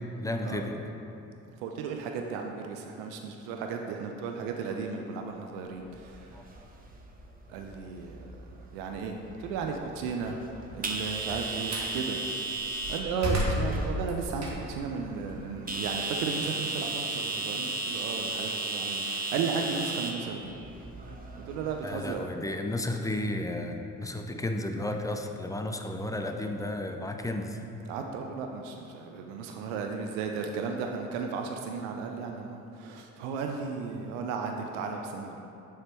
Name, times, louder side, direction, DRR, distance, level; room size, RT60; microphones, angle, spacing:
voice 1, 0.2-0.8 6.3-6.4 21.8-27.6, left 1 dB, 10° left, 4 dB, 0.4 m, -33 dB
voice 2, 1.6-6.2 7.5-8.3 8.7-10.4 10.7-12.2 12.9-20.5 21.5-22.3 27.9-35.4, right 5 dB, 75° right, 3 dB, 0.5 m, -35 dB
sound 1, 5.8-21.9, right 3 dB, 20° right, 0.8 m, -36 dB
Slam, 11.0-12.0 12.5-14.9 15.3-17.7, equal, 40° right, 1.3 m, -33 dB
6.8 x 3.2 x 4.4 m, 2.8 s
hypercardioid pair, 50°, 40 cm